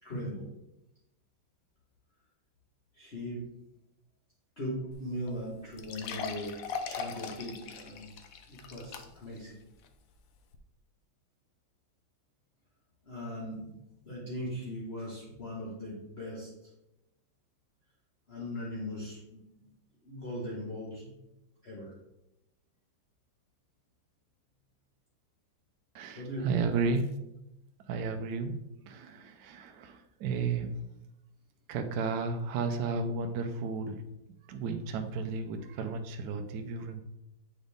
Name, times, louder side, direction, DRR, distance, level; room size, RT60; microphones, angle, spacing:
voice 1, 0.0-0.5 2.9-3.5 4.6-6.6 6.9-8.1 8.5-9.6 13.0-13.7 14.0-16.5 18.3-19.7 20.0-21.2 21.6-21.9 26.1-26.7, equal, 35° left, -7 dB, 1.4 m, -39 dB
sound 1, 4.9-5.0 5.3-5.4 5.8-9.4 9.8-9.9 10.5-10.6, left 5 dB, 75° left, 0.7 m, -40 dB
voice 2, 25.9-27.1 27.9-28.6 28.9-30.8 31.7-34.0 34.5-37.0, right 4 dB, 70° right, 5 dB, 1.0 m, -33 dB
8.1 x 3.9 x 3.4 m, 0.88 s
omnidirectional pair, 2.1 m